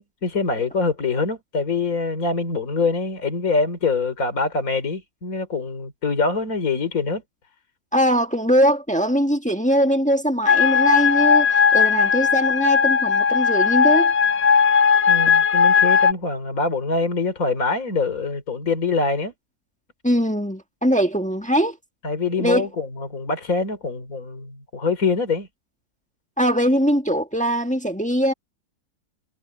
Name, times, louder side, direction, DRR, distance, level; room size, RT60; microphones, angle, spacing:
voice 1, 0.2-7.2 15.1-19.3 22.0-25.5, left 4 dB, 60° left, 3.6 m, -24 dB
voice 2, 7.9-14.1 20.0-21.8 22.4-22.6 26.4-28.3, equal, 5° left, 1.4 m, -21 dB
sound 1, 10.5-16.1, left 6 dB, 35° left, 0.7 m, -17 dB
omnidirectional pair, 1.7 m